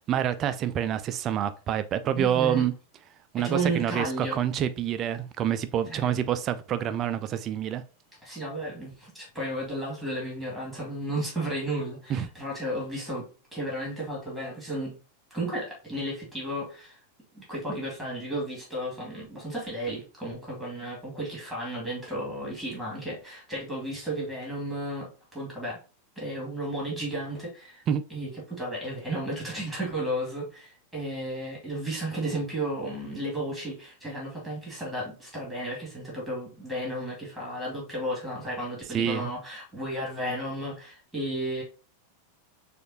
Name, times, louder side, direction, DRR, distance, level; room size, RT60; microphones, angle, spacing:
voice 1, 0.1-2.7 3.3-7.8 12.1-12.3 27.9-28.0 38.9-39.3, right 9 dB, 30° right, 0.4 m, -27 dB
voice 2, 2.1-2.7 3.4-4.4 6.0-6.1 8.2-15.0 15.3-17.0 17.3-25.8 26.2-27.8 28.1-41.6, right 1 dB, 5° right, 2.4 m, -33 dB
6.3 x 2.5 x 2.8 m
figure-of-eight pair, 90°, 0 cm